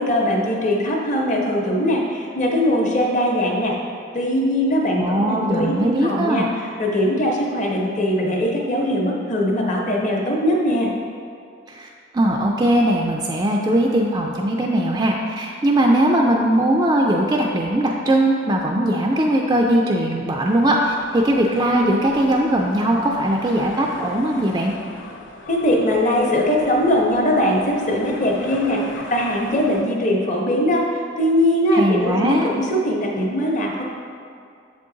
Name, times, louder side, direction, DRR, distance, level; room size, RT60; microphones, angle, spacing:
voice 1, 0.0-3.8 4.1-10.9 25.5-33.8, left 1 dB, 40° left, -1 dB, 0.9 m, -21 dB
voice 2, 4.9-6.5 11.7-11.9 12.1-24.7 31.7-32.5, right 1 dB, 20° right, 0 dB, 0.3 m, -19 dB
sound 1, 20.5-29.8, left 2 dB, 90° left, 0.5 m, -39 dB
7.4 x 3.8 x 3.8 m, 2.4 s
head